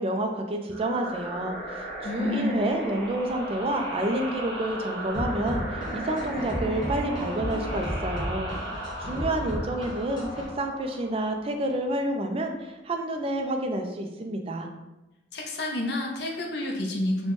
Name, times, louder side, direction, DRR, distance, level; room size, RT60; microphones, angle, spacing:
voice 1, 0.0-14.7, right 1 dB, 30° right, 4 dB, 0.3 m, -29 dB
sound 1, 0.7-12.0, right 1 dB, 85° right, 1.4 m, -37 dB
voice 2, 2.0-2.6 15.3-17.3, left 1 dB, 60° left, 0 dB, 0.6 m, -29 dB
sound 2, 5.1-10.5, equal, 25° left, 1.0 m, -33 dB
4.2 x 2.1 x 3.0 m, 1.0 s
head